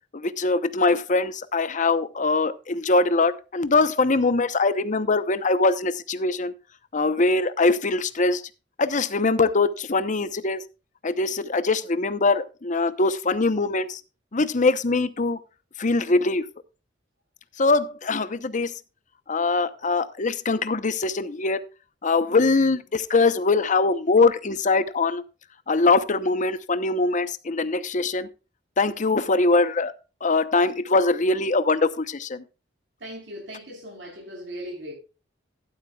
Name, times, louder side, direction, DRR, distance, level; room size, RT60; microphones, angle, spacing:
voice 1, 0.1-6.5 6.9-8.4 8.8-10.6 11.0-14.0 14.3-15.4 15.8-16.4 17.6-18.7 19.3-21.6 22.0-25.2 25.7-28.3 28.8-29.9 30.2-32.4, left 3 dB, 40° left, 0.8 m, -22 dB
voice 2, 33.0-34.9, equal, 70° right, 4.0 m, -38 dB
12.5 x 12.0 x 2.4 m
head